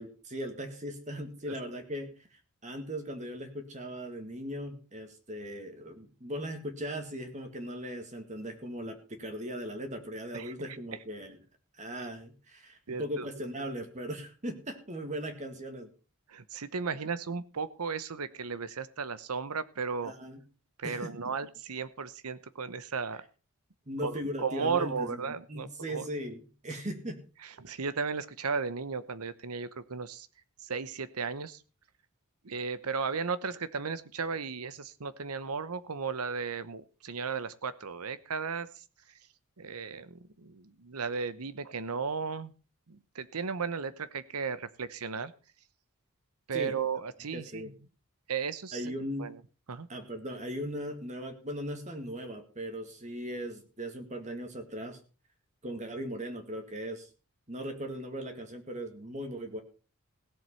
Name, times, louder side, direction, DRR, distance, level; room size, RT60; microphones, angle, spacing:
voice 1, 0.0-11.4 11.8-15.9 20.0-20.4 20.8-21.3 23.9-27.2 46.5-46.8 47.3-47.7 48.7-49.3 49.9-55.0 55.6-57.1 57.5-59.6, equal, 30° right, 6 dB, 2.0 m, -38 dB
voice 2, 12.9-13.3 16.3-20.1 20.8-23.2 24.0-26.1 27.4-30.3 30.6-31.6 32.4-38.8 39.6-42.5 42.9-45.3 46.5-47.7 48.3-48.9 49.2-49.4 49.7-49.9, right 5 dB, 85° right, 15 dB, 0.9 m, -35 dB
17.0 x 7.7 x 5.6 m, 0.35 s
head